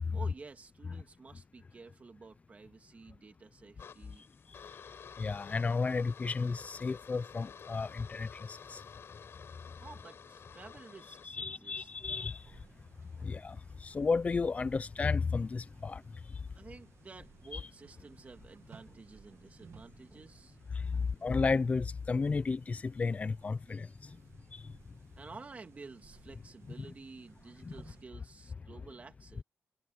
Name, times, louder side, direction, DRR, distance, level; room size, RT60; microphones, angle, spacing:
voice 1, 0.1-4.3 9.8-11.9 12.5-12.6 13.2-13.3 16.3-20.6 20.9-21.1 24.0-24.3 24.6-24.7 25.2-29.4, right 4 dB, 30° right, 1.8 m, -52 dB
sound 1, 3.8-11.3, left 7 dB, 55° left, 5.0 m, -51 dB
voice 2, 5.2-8.8 11.2-12.4 13.2-13.6 13.8-16.0 17.5-17.6 20.9-23.9 26.8-26.9 27.6-27.7, left 4 dB, 30° left, 0.5 m, -33 dB
sound 2, 11.8-28.1, right 7 dB, 65° right, 1.5 m, -61 dB
wide cardioid pair, 175°, 5 cm